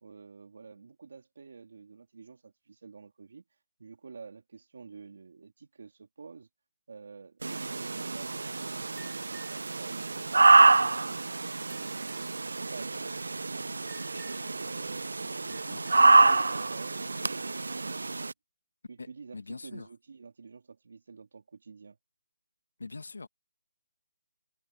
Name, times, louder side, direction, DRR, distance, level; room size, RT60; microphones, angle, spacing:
voice 1, 0.0-3.4 3.8-6.5 6.9-10.2 10.6-11.2 11.6-14.0 14.6-17.5 17.8-18.3 18.9-22.0, right 5 dB, 45° right, 3.1 m, -49 dB
sound 1, 7.4-18.3, right 3 dB, 90° right, 0.5 m, -26 dB
sound 2, 9.0-9.6 10.4-10.8 11.7-12.3 13.9-14.6 15.5-16.2, right 2 dB, ahead, 7.3 m, -58 dB
voice 2, 15.5-15.8 19.0-19.1 19.3-19.9 22.8-23.3, left 3 dB, 85° left, 1.8 m, -42 dB
hypercardioid pair, 180°, 0 cm